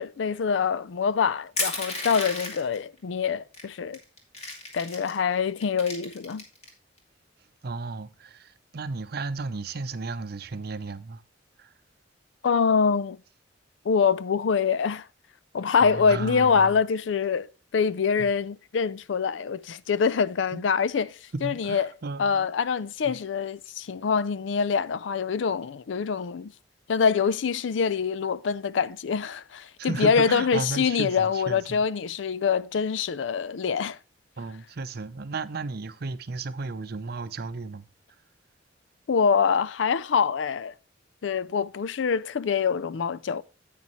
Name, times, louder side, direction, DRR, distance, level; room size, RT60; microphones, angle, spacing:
voice 1, 0.0-4.0 4.7-6.5 12.4-13.2 13.9-15.1 15.5-17.5 17.7-21.9 22.2-26.5 26.9-34.0 39.1-40.7 41.2-43.4, left 6 dB, 80° left, 0.4 m, -25 dB
Crushing, 1.6-2.8 3.5-3.6 3.9-5.2 5.6-6.7, left 2 dB, 35° left, 2.4 m, -32 dB
voice 2, 7.6-11.2 11.6-11.7 15.8-16.8 18.2-18.3 20.5-20.6 21.3-22.5 23.0-23.2 29.8-31.8 34.4-37.9, right 3 dB, 55° right, 0.6 m, -34 dB
9.5 x 8.5 x 3.1 m
head